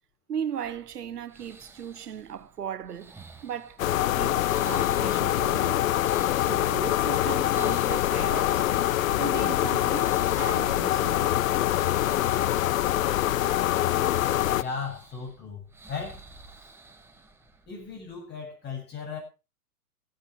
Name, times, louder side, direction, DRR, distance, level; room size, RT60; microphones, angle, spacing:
voice 1, 0.3-3.2 3.4-5.9 6.4-8.7 9.2-11.4, right 8 dB, 85° right, 1.2 m, -37 dB
sound 1, 0.6-18.2, right 2 dB, 5° right, 1.3 m, -52 dB
sound 2, 3.8-14.6, left 13 dB, 60° left, 0.7 m, -24 dB
voice 2, 14.5-16.2 16.6-16.7 17.7-19.2, left 5 dB, 20° left, 7.8 m, -37 dB
15.5 x 12.0 x 4.6 m
hypercardioid pair, 130°, 46 cm